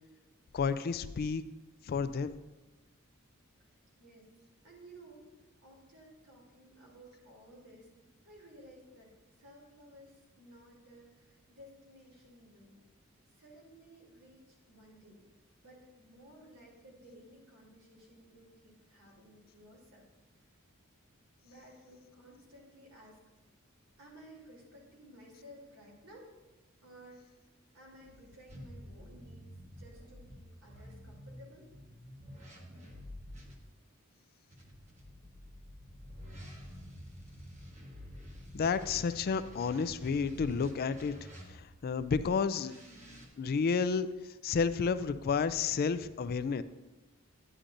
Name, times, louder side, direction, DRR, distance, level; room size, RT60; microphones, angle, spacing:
voice 1, 0.5-1.4 1.9-2.4 38.5-41.1 41.5-42.7 43.4-44.1 44.4-46.6, left 5 dB, 45° left, 13 dB, 0.3 m, -31 dB
voice 2, 4.6-5.3 5.6-7.9 8.2-12.7 13.3-15.2 15.6-20.1 20.3-20.5 21.4-23.2 24.0-26.3 26.8-27.3 27.7-31.7, right 1 dB, 85° right, -2 dB, 3.1 m, -56 dB
sound 1, 28.5-33.6 34.5-41.9 42.6-43.3, equal, 35° right, 1.2 m, -49 dB
10.0 x 9.8 x 2.6 m, 1.1 s
head